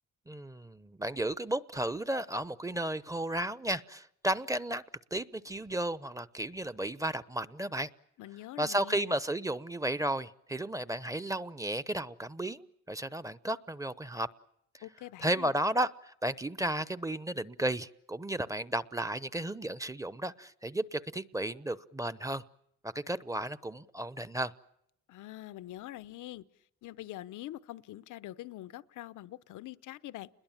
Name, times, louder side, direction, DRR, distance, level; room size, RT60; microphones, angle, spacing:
voice 1, 0.3-4.8 5.1-7.9 8.6-14.3 14.7-14.8 15.2-22.4 22.8-24.5, right 1 dB, 10° right, 0.9 m, -33 dB
voice 2, 8.2-9.1 14.8-15.5 25.1-26.4 26.8-30.3, left 15 dB, 80° left, 0.9 m, -44 dB
29.0 x 21.5 x 7.4 m
cardioid pair, 90°, 30 cm